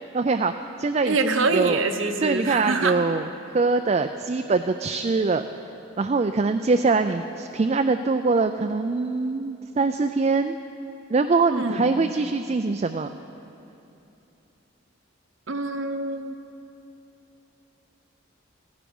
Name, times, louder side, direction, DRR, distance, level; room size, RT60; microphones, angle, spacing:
voice 1, 0.1-0.5 0.8-1.8 2.2-3.3 3.5-5.4 6.0-10.6 11.1-13.1, right 3 dB, 30° right, 7 dB, 0.3 m, -23 dB
voice 2, 1.0-3.0 11.5-11.9 15.5-16.4, right 3 dB, 75° right, 7 dB, 1.0 m, -25 dB
15.5 x 15.0 x 5.4 m, 2.9 s
head